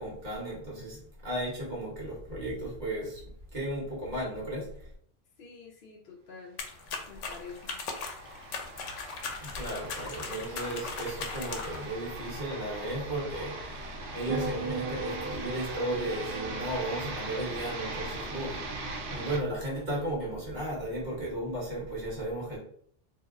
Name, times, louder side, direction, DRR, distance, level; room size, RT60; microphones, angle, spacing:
voice 1, 0.0-3.2 3.5-4.9 9.4-18.6 19.1-22.6, right 1 dB, 40° right, -4 dB, 1.3 m, -35 dB
voice 2, 5.4-6.6 7.1-7.8, left 5 dB, 55° left, -1 dB, 0.6 m, -47 dB
sound 1, 6.6-11.9, left 4 dB, 85° left, 0.9 m, -39 dB
sound 2, 6.8-19.4, right 2 dB, 75° right, 0.9 m, -40 dB
sound 3, 14.3-18.7 19.0-19.4, right 5 dB, 55° right, 0.4 m, -40 dB
2.7 x 2.1 x 3.5 m, 0.63 s
omnidirectional pair, 1.2 m